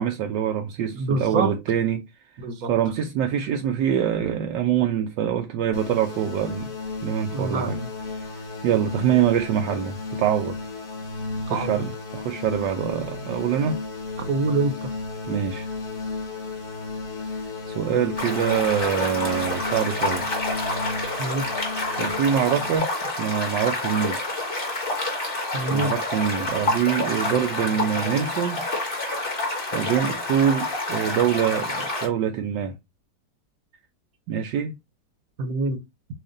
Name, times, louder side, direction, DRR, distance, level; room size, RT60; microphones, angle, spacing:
voice 1, 0.0-2.1 2.7-6.7 7.0-7.8 8.2-10.6 11.5-13.8 15.3-15.7 17.3-17.4 17.7-20.3 22.0-24.3 25.7-28.6 29.7-32.7 34.3-34.7, right 9 dB, 80° right, 1.3 m, -25 dB
voice 2, 1.0-1.5 2.4-2.7 7.3-7.9 11.5-11.8 14.3-14.9 21.2-21.5 25.5-25.9 35.4-35.8, right 3 dB, 60° right, 1.1 m, -25 dB
sound 1, 5.7-22.8, left 3 dB, 60° left, 2.1 m, -34 dB
sound 2, 18.2-32.1, left 2 dB, 30° left, 1.7 m, -28 dB
7.4 x 2.5 x 2.5 m
omnidirectional pair, 1.9 m